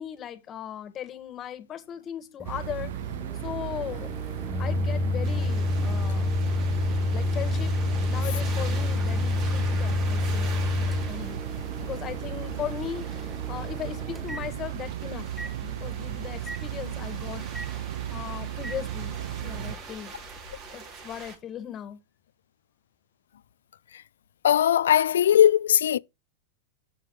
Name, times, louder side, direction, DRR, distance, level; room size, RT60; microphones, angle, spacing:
voice 1, 0.0-2.9 3.4-4.1 4.6-6.3 7.1-7.8 8.1-11.4 11.8-15.3 15.6-17.5 17.7-19.1 19.4-20.1 20.7-22.0, left 10 dB, 30° left, 1.8 m, -38 dB
Microwave oven, 2.4-14.9 15.4-15.5 16.5-16.6 17.5-17.7 18.6-18.8, left 3 dB, ahead, 0.5 m, -29 dB
sound 1, 2.4-19.8, right 12 dB, 70° right, 0.5 m, -35 dB
sound 2, 5.2-21.3, right 3 dB, 45° right, 4.6 m, -44 dB
voice 2, 24.4-26.0, left 10 dB, 80° left, 0.4 m, -19 dB
11.5 x 7.0 x 3.2 m
hypercardioid pair, 115°, 0 cm